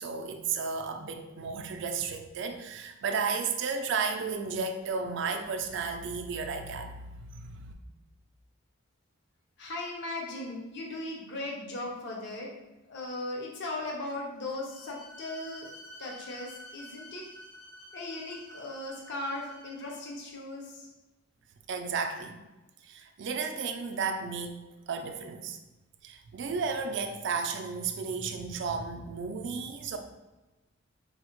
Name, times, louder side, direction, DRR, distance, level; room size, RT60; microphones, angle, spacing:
voice 1, 0.0-7.7 21.7-22.4 22.8-24.6 24.9-25.6 26.0-30.0, right 5 dB, 60° right, 6 dB, 0.3 m, -33 dB
voice 2, 9.6-12.5 12.9-15.7 16.0-17.2 17.9-20.9, left 2 dB, 55° left, -1 dB, 0.5 m, -38 dB
Bowed string instrument, 14.7-20.2, equal, 85° left, 1.0 m, -50 dB
4.5 x 2.0 x 2.9 m, 1.1 s
head